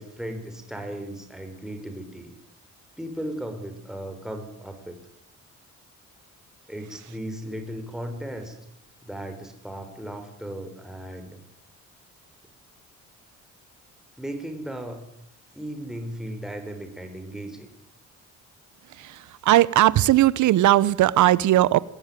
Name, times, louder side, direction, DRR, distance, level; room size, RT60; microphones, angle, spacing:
voice 1, 0.0-2.3 3.0-5.0 6.7-8.6 9.0-11.4 14.2-15.0 15.5-17.7, right 1 dB, ahead, 5 dB, 4.7 m, -36 dB
voice 2, 19.4-21.8, right 14 dB, 75° right, 20 dB, 0.9 m, -18 dB
21.5 x 16.5 x 9.0 m, 0.77 s
cardioid pair, 90°, 30 cm